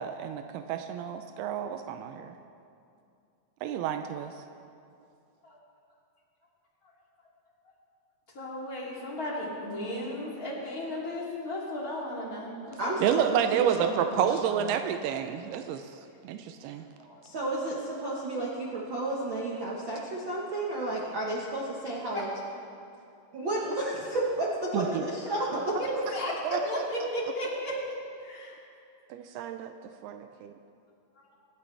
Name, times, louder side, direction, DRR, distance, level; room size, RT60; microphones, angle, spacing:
voice 1, 0.0-2.4 3.6-4.3 13.0-15.9 16.2-16.8 24.7-25.0 26.4-26.6 29.1-29.7 30.0-30.5, right 9 dB, 85° right, 7 dB, 2.6 m, -30 dB
voice 2, 8.3-12.8 13.0-13.2 17.0-17.2 18.5-18.6 22.1-22.2 25.8-26.3 26.6-27.8 28.2-28.6, left 1 dB, 25° left, -5 dB, 2.8 m, -35 dB
voice 3, 12.8-14.8 17.2-22.3 23.3-25.8, right 2 dB, 70° right, -5 dB, 1.1 m, -32 dB
25.5 x 11.5 x 3.3 m, 2.5 s
omnidirectional pair, 4.4 m